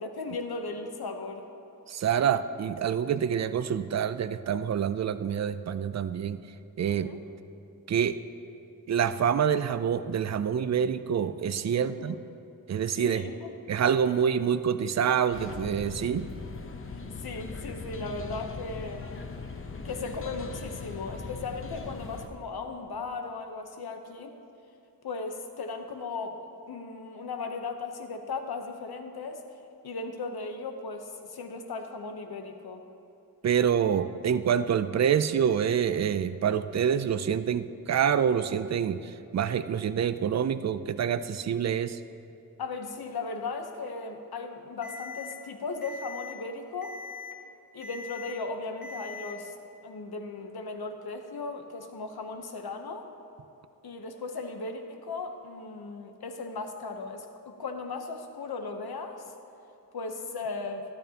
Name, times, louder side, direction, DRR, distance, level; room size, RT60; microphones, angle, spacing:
voice 1, 0.0-1.5 7.0-7.2 11.8-12.1 13.0-13.5 16.9-19.2 19.8-24.4 25.0-29.4 29.8-32.8 42.6-47.0 47.7-49.5 49.8-53.1 53.8-59.3 59.9-60.8, left 3 dB, 85° left, 5 dB, 0.9 m, -37 dB
voice 2, 1.9-6.4 6.8-7.1 7.9-8.2 8.9-12.2 12.7-13.3 13.7-16.3 33.4-42.0, right 8 dB, 50° right, 13 dB, 0.4 m, -26 dB
sound 1, 15.3-22.3, left 4 dB, 35° left, 0.8 m, -40 dB
Alarm, 44.8-45.3 45.8-46.3 46.8-47.3 47.8-48.3 48.8-49.3, left 4 dB, 60° left, 1.4 m, -41 dB
13.5 x 12.5 x 2.9 m, 2.7 s
wide cardioid pair, 120°, 37 cm